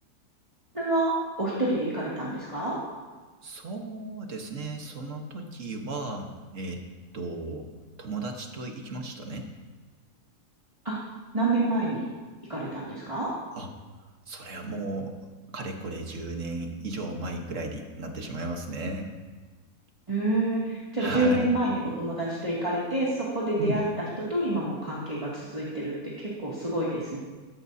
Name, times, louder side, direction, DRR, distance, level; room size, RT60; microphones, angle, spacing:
voice 1, 0.7-2.8 10.8-11.0 11.3-12.1 12.5-13.3 20.1-23.8 24.2-27.2, right 2 dB, 20° right, -8 dB, 2.3 m, -28 dB
voice 2, 3.4-6.8 7.1-7.7 8.0-9.5 13.6-13.7 14.3-15.2 15.5-19.1 21.0-21.5 23.6-23.8, right 2 dB, 55° right, 3 dB, 1.6 m, -35 dB
15.0 x 13.5 x 2.8 m, 1.3 s
omnidirectional pair, 1.7 m